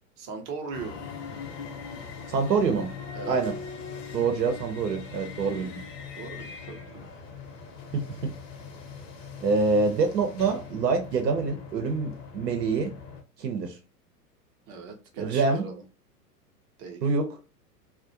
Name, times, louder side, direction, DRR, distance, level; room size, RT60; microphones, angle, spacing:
voice 1, 0.2-1.0 3.1-3.4 6.1-7.1 14.7-15.8 16.8-17.1, right 4 dB, 30° right, 0.6 m, -39 dB
sound 1, 0.7-13.2, left 5 dB, 50° left, 0.7 m, -41 dB
voice 2, 2.3-2.9 3.3-3.5 4.1-5.8 7.9-8.3 9.4-12.9 13.4-13.8 15.2-15.6 17.0-17.3, right 4 dB, 80° right, 0.7 m, -26 dB
2.3 x 2.1 x 2.7 m
hypercardioid pair, 105°, 49 cm